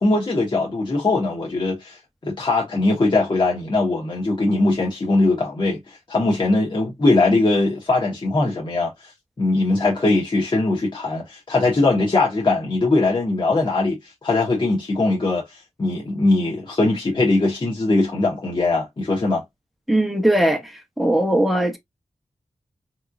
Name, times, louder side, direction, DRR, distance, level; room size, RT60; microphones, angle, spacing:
voice 1, 0.0-9.1 9.4-19.4, left 2 dB, 40° left, 1.2 m, -21 dB
voice 2, 19.9-20.7 21.0-21.8, right 1 dB, ahead, 0.9 m, -19 dB
3.6 x 3.1 x 2.5 m
wide cardioid pair, 105°, 12 cm